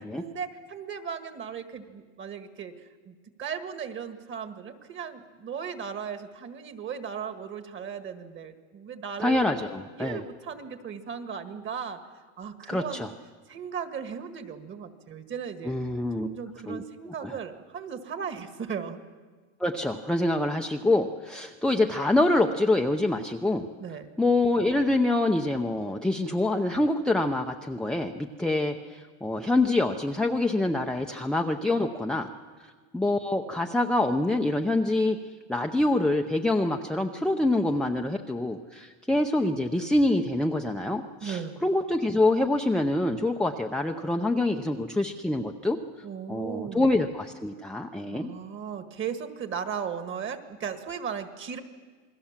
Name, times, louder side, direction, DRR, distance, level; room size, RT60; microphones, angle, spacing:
voice 1, 0.1-9.4 9.9-13.1 13.5-15.7 16.2-19.0 23.8-24.1 41.2-41.5 46.0-46.9 48.1-51.6, right 7 dB, 30° right, 9 dB, 1.8 m, -36 dB
voice 2, 9.2-10.2 12.7-13.1 15.7-16.3 16.7-17.3 19.6-23.7 24.2-32.3 32.9-35.2 35.5-45.8 46.3-48.3, left 2 dB, ahead, 4 dB, 0.6 m, -26 dB
28.0 x 21.0 x 7.4 m, 1.5 s
cardioid pair, 150°, 39 cm